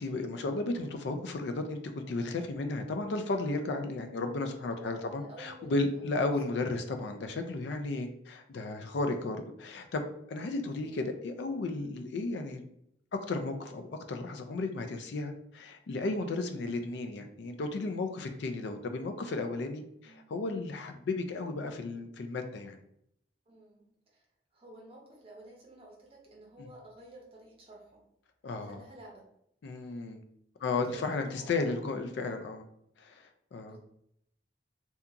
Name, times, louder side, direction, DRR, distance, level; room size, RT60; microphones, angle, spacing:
voice 1, 0.0-12.7 13.1-22.8 26.6-26.7 28.4-28.9 29.6-30.2 30.6-32.7 33.0-33.8, left 3 dB, 65° left, 6 dB, 0.4 m, -34 dB
voice 2, 4.8-6.0 10.8-11.0 20.0-20.3 23.5-23.8 24.1-24.2 24.5-28.0 28.6-29.2 30.6-31.7 33.6-33.8, right 1 dB, 30° right, -2 dB, 0.7 m, -52 dB
2.8 x 2.3 x 2.4 m, 0.75 s
head